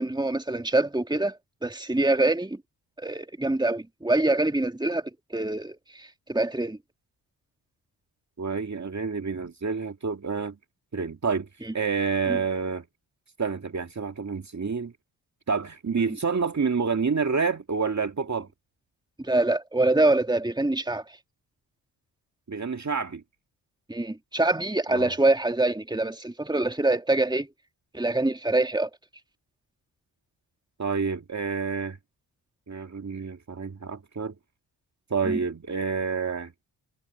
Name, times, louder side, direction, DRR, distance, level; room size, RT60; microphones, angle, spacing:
voice 1, 0.0-1.4 1.6-2.6 3.0-6.8 11.6-11.7 12.3-12.4 19.2-21.0 23.9-27.5 27.9-28.9 35.3-35.4, right 2 dB, 10° right, 2.5 m, -25 dB
voice 2, 8.4-10.6 10.9-11.5 11.7-12.8 13.4-14.9 15.5-18.5 22.5-23.2 24.9-25.1 30.8-32.0 32.7-34.3 35.1-36.5, right 5 dB, 35° right, 2.2 m, -28 dB
supercardioid pair, 55°, 46 cm